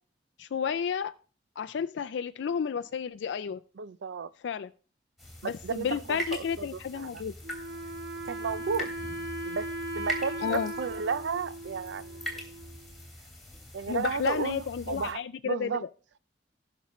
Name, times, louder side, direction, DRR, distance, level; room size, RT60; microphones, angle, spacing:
voice 1, 0.4-1.1 1.6-3.6 4.4-4.7 5.4-7.3 10.4-10.7 13.9-15.9, left 7 dB, 75° left, 0.3 m, -32 dB
voice 2, 3.8-4.3 5.4-7.2 8.2-8.9 9.5-9.7 9.9-12.2 13.7-15.2 15.4-15.8, right 5 dB, 80° right, 0.4 m, -33 dB
sound 1, 5.2-15.1, equal, ahead, 3.2 m, -42 dB
Wind instrument woodwind instrument, 7.4-12.9, right 1 dB, 65° right, 1.1 m, -38 dB
18.0 x 6.1 x 3.1 m
head